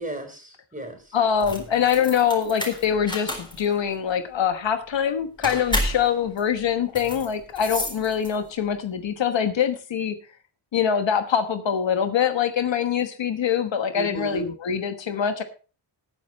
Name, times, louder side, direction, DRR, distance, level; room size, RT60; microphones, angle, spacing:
voice 1, 0.0-1.2 13.9-14.5, right 1 dB, 15° right, 5 dB, 4.3 m, -34 dB
voice 2, 1.1-10.2 10.7-15.4, left 8 dB, 70° left, 9 dB, 1.3 m, -24 dB
sound 1, 1.3-8.6, equal, 10° left, 4.1 m, -32 dB
18.5 x 9.2 x 3.1 m, 0.35 s
wide cardioid pair, 95°, 46 cm